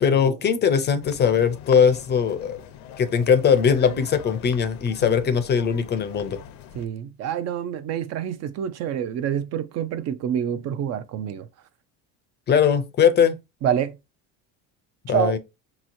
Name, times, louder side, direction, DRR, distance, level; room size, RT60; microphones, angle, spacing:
voice 1, 0.0-2.6 3.0-6.4 12.5-13.4 15.1-15.4, left 7 dB, 30° left, 0.5 m, -20 dB
sound 1, 1.0-6.9, left 9 dB, 70° left, 0.7 m, -42 dB
voice 2, 6.7-11.5 13.6-14.0 15.1-15.4, right 9 dB, 50° right, 0.5 m, -27 dB
5.4 x 3.0 x 2.6 m
cardioid pair, 135°, 34 cm